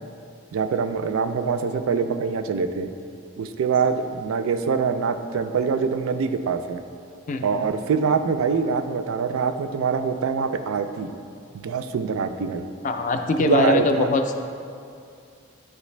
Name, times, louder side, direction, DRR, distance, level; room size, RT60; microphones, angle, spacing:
voice 1, 0.5-2.9 3.4-6.8 7.4-11.1 11.6-12.6 13.4-14.1, right 5 dB, 80° right, 9 dB, 0.3 m, -24 dB
voice 2, 7.3-7.7 12.8-14.3, left 3 dB, 35° left, 6 dB, 0.3 m, -22 dB
9.2 x 3.2 x 3.1 m, 2.4 s
head